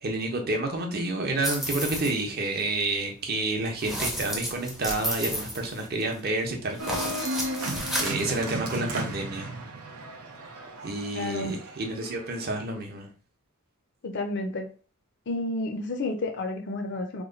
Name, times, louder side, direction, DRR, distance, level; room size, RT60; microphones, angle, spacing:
voice 1, 0.0-7.1 8.0-9.5 10.8-13.1, right 2 dB, 45° right, 2 dB, 0.8 m, -29 dB
sound 1, 1.4-2.2 3.8-6.2 6.7-8.4, equal, ahead, 0.5 m, -32 dB
Organ, 6.8-12.4, right 1 dB, 85° right, 0.7 m, -35 dB
voice 2, 11.1-11.6 14.0-14.7 15.3-17.2, left 2 dB, 50° left, 5 dB, 0.5 m, -31 dB
3.0 x 2.2 x 3.8 m, 0.36 s
head